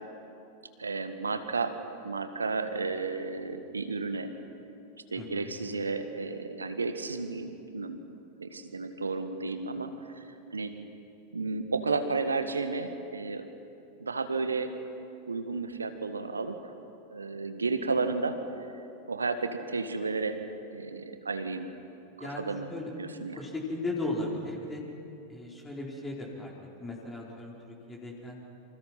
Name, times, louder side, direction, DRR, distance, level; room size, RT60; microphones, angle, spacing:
voice 1, 0.8-1.8 2.0-4.3 5.1-8.0 8.4-10.7 11.3-13.5 14.0-14.7 15.3-16.7 17.1-18.4 19.0-20.4 20.7-21.7 22.2-22.7 23.0-23.4, right 4 dB, 75° right, 8 dB, 1.7 m, -32 dB
voice 2, 5.1-5.5 22.2-22.9 23.3-24.8 25.3-26.5 26.8-28.4, left 2 dB, 15° left, -2 dB, 4.3 m, -36 dB
28.0 x 26.0 x 5.8 m, 2.8 s
figure-of-eight pair, 90°, 0 cm